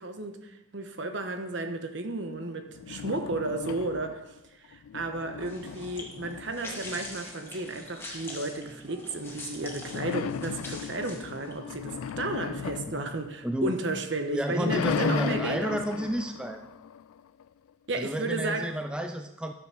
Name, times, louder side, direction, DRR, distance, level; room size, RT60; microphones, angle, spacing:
voice 1, 0.0-16.0 17.9-18.7, right 2 dB, 60° right, 1.1 m, -33 dB
sound 1, 2.7-4.4 4.7-7.5 9.8-13.9 14.3-17.4, left 8 dB, 90° left, 0.3 m, -36 dB
sound 2, 5.4-11.6, left 2 dB, 10° left, 1.8 m, -44 dB
voice 2, 13.4-13.7 14.3-16.7 17.9-19.5, equal, 5° right, 0.4 m, -30 dB
12.0 x 7.1 x 6.1 m
head